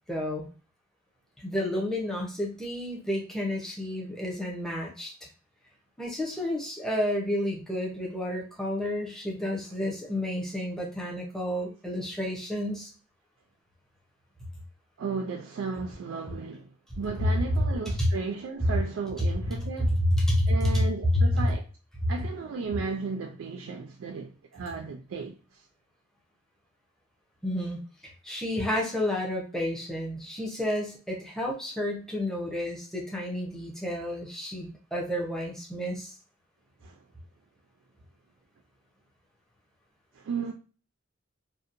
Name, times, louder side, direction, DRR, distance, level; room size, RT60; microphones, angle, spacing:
voice 1, 0.1-0.5 1.4-5.3 6.0-12.9 20.0-20.8 21.1-21.5 27.4-36.1, left 1 dB, 5° left, 0.6 m, -30 dB
voice 2, 15.0-20.0 20.5-21.6 22.1-25.7 36.8-37.0 40.1-40.5, right 4 dB, 85° right, 0.3 m, -35 dB
2.7 x 2.1 x 2.5 m
head